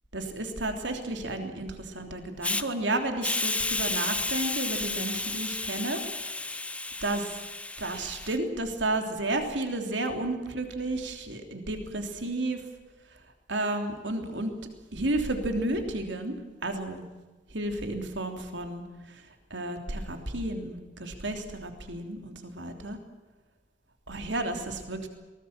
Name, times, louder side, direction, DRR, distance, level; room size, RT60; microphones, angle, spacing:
voice 1, 0.1-6.0 7.0-7.3 7.8-12.6 13.5-14.5 14.9-16.4 16.6-17.0 17.5-18.8 19.5-23.0 24.1-25.1, right 2 dB, 75° right, 5 dB, 3.2 m, -32 dB
Hiss, 2.4-2.6 3.2-8.4, left 2 dB, 5° left, 0.7 m, -32 dB
23.0 x 20.0 x 7.4 m, 1.2 s
head